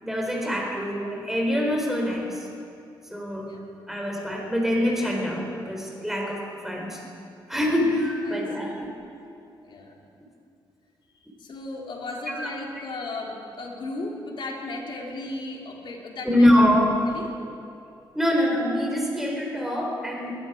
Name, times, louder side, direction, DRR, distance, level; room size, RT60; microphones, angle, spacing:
voice 1, 0.0-2.5 3.1-3.5 3.9-7.0 7.5-8.9 12.3-12.5 16.2-16.9 18.1-20.4, left 1 dB, 5° right, -1 dB, 4.1 m, -24 dB
voice 2, 8.2-8.7 9.6-9.9 11.2-16.5 16.8-17.4, left 2 dB, 65° left, -1 dB, 2.9 m, -36 dB
21.0 x 11.5 x 5.1 m, 2.6 s
cardioid pair, 80°, 9 cm